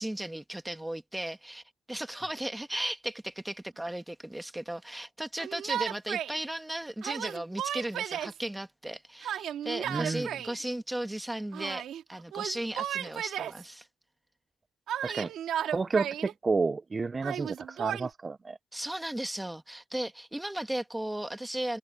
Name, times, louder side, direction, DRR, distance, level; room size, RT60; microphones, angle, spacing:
voice 1, 0.0-13.9 18.7-21.8, right 1 dB, 5° right, 1.8 m, -36 dB
Yell, 5.4-6.4 7.0-8.4 9.2-10.6 11.5-12.0 12.3-13.6 14.9-16.3 17.2-18.1, right 10 dB, 65° right, 2.2 m, -34 dB
voice 2, 9.9-10.2 15.0-15.3 15.7-18.6, right 4 dB, 20° right, 0.4 m, -30 dB
cardioid pair, 135°, 0 cm